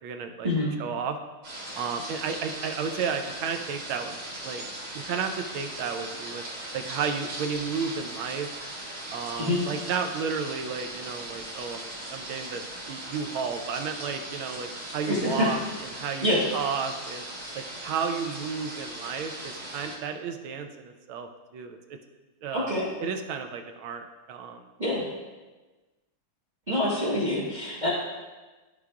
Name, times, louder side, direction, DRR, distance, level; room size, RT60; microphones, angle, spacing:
voice 1, 0.0-0.5 0.8-1.2 1.8-4.2 4.4-4.6 4.9-6.4 6.7-8.5 9.1-12.6 12.9-17.2 17.5-22.0 22.4-22.7 23.0-24.6, right 6 dB, 85° right, 6 dB, 1.5 m, -32 dB
sound 1, 1.4-20.0, right 1 dB, 65° right, 3.3 m, -39 dB
voice 2, 15.1-15.5 16.2-16.4 22.5-22.9 24.8-25.0 26.7-27.9, left 1 dB, 25° right, -7 dB, 1.2 m, -26 dB
13.0 x 4.8 x 2.3 m, 1.2 s
omnidirectional pair, 2.2 m